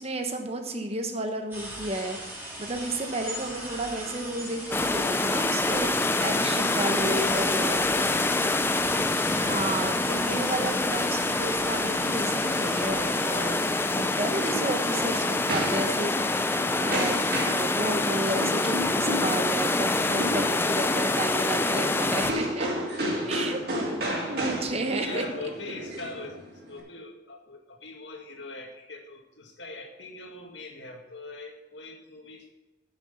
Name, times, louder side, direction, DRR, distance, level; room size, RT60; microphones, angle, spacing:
voice 1, 0.0-7.8 9.3-13.6 14.0-16.5 16.8-22.7 23.3-25.2, right 2 dB, 35° right, 5 dB, 1.1 m, -32 dB
sound 1, 1.5-17.4, right 1 dB, 10° right, 3.2 m, -40 dB
sound 2, 4.7-22.3, left 2 dB, 10° left, 0.4 m, -26 dB
voice 2, 7.2-8.2 21.4-22.2 22.9-23.4 23.8-32.5, left 2 dB, 75° left, 2 dB, 1.9 m, -42 dB
sound 3, 14.4-26.8, equal, 60° right, 2.6 m, -33 dB
9.4 x 6.1 x 6.8 m, 1.1 s
head